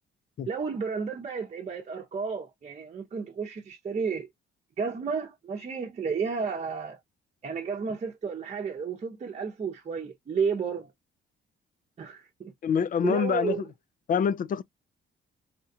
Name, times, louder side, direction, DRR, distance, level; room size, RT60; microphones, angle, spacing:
voice 1, 0.5-4.3 4.8-7.0 7.4-10.9 12.0-12.5 13.0-13.6, right 5 dB, 35° right, 0.8 m, -32 dB
voice 2, 12.6-13.6 14.1-14.6, left 7 dB, 45° left, 0.4 m, -26 dB
4.3 x 2.4 x 2.7 m
cardioid pair, 90°, 20 cm